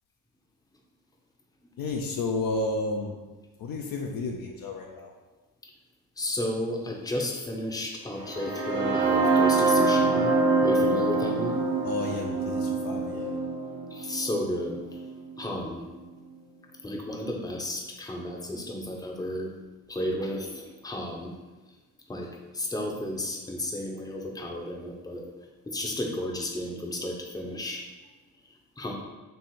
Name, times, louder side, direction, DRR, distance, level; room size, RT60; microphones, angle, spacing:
voice 1, 1.8-3.2 3.6-5.1 11.8-13.4, left 3 dB, 50° left, 1 dB, 0.7 m, -31 dB
voice 2, 6.2-10.3 10.6-11.5 13.9-14.8 15.4-15.8 16.8-19.5 19.9-21.3 22.1-22.3 22.5-25.2 25.7-27.8 28.8-28.9, left 1 dB, 10° left, 0 dB, 0.9 m, -33 dB
sound 1, 8.2-16.1, right 3 dB, 55° right, 1.4 m, -25 dB
3.5 x 3.3 x 4.3 m, 1.2 s
hypercardioid pair, 55°, 46 cm